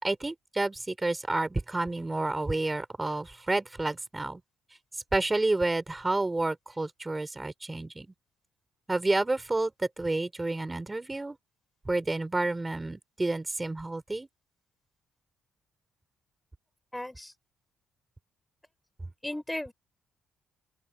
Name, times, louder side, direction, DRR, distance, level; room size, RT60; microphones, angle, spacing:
voice 1, 0.0-4.4 5.1-8.1 8.9-11.4 11.8-14.3, right 2 dB, 15° right, 4.1 m, -30 dB
voice 2, 16.9-17.3 19.2-19.7, left 1 dB, 10° left, 6.3 m, -35 dB
open air
cardioid pair, 90°, 0 cm